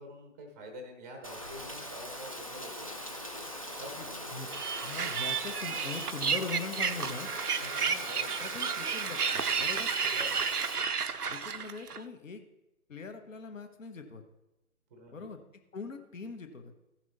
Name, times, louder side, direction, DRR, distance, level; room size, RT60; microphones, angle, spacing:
voice 1, 0.0-2.9 3.8-4.6 7.6-8.5 10.1-10.3 14.9-15.4, equal, 10° right, 4 dB, 0.7 m, -47 dB
Rain, 1.2-10.7, equal, 25° left, 0.4 m, -41 dB
sound 1, 4.5-12.0, right 6 dB, 85° right, 0.7 m, -32 dB
voice 2, 4.8-7.3 8.4-9.9 11.3-12.4 12.9-14.2 15.1-15.4 15.7-16.7, left 4 dB, 60° left, 6 dB, 1.2 m, -41 dB
14.5 x 6.0 x 4.0 m, 0.94 s
figure-of-eight pair, 140°, 44 cm